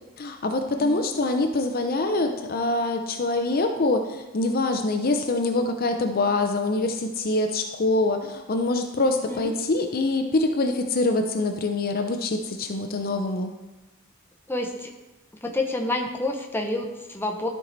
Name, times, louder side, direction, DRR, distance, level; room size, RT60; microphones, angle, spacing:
voice 1, 0.2-13.5, left 2 dB, 45° left, 5 dB, 0.6 m, -25 dB
voice 2, 0.8-1.2 9.3-9.5 14.5-14.9 15.4-17.5, left 2 dB, 10° left, 1 dB, 0.8 m, -29 dB
12.5 x 4.7 x 4.0 m, 1.0 s
head